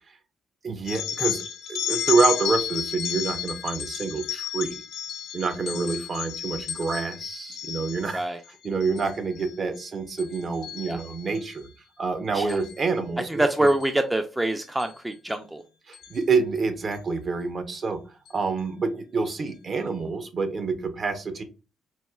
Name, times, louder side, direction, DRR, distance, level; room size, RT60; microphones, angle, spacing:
voice 1, 0.6-1.4 1.7-4.8 5.3-8.2 8.6-11.7 12.0-13.7 15.9-18.0 18.3-21.4, right 4 dB, 45° right, 9 dB, 0.7 m, -27 dB
sound 1, 0.9-8.2 8.6-9.0 9.3-9.8 10.2-11.5 12.5-12.7 13.7-13.8 14.8-14.9 15.3-15.4 15.9-16.2, left 10 dB, 85° left, 0.6 m, -32 dB
voice 2, 13.3-15.6, right 1 dB, 10° right, 6 dB, 0.4 m, -25 dB
4.2 x 2.3 x 2.2 m, 0.31 s
cardioid pair, 90°, 0 cm